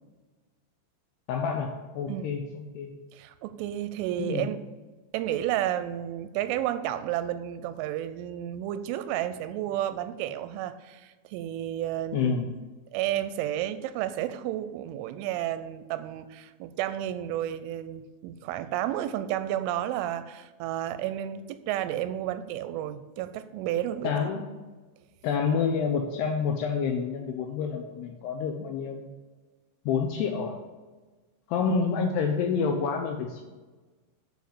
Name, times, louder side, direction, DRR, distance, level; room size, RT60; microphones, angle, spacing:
voice 1, 1.3-2.9 4.2-4.5 12.1-12.5 24.0-24.4 25.2-29.1 29.9-30.6 31.5-33.4, left 6 dB, 80° left, 4 dB, 2.5 m, -28 dB
voice 2, 2.1-2.4 3.1-4.6 5.1-12.5 12.9-24.3, right 12 dB, 90° right, 12 dB, 3.1 m, -32 dB
9.3 x 4.6 x 7.0 m, 1.3 s
omnidirectional pair, 5.5 m